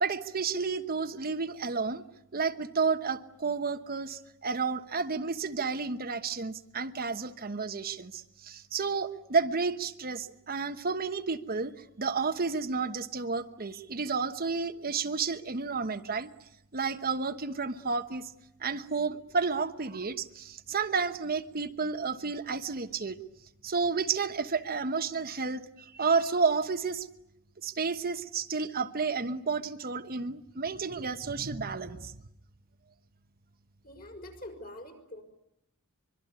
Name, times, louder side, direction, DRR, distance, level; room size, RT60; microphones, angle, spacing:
voice 1, 0.0-2.0 2.3-16.3 16.7-18.3 18.6-23.2 23.6-27.1 27.6-32.2, right 4 dB, 40° right, 8 dB, 1.1 m, -31 dB
voice 2, 33.8-35.2, left 1 dB, 40° left, 5 dB, 5.8 m, -45 dB
25.0 x 23.5 x 9.6 m, 0.81 s
head